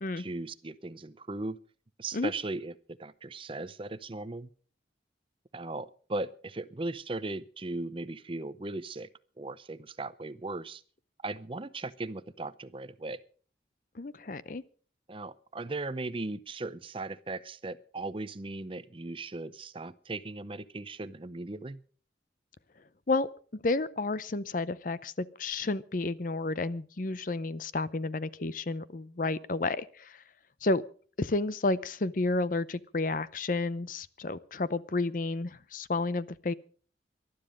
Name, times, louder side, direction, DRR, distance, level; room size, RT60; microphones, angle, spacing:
voice 1, 0.2-1.6 2.0-4.5 5.5-9.1 9.4-10.8 11.2-13.2 15.1-21.8, right 2 dB, 30° right, 16 dB, 0.6 m, -38 dB
voice 2, 13.9-14.6 23.1-23.3 23.6-30.2 30.6-30.8 31.2-36.5, left 3 dB, 45° left, 17 dB, 0.6 m, -31 dB
19.5 x 12.0 x 5.1 m, 0.44 s
head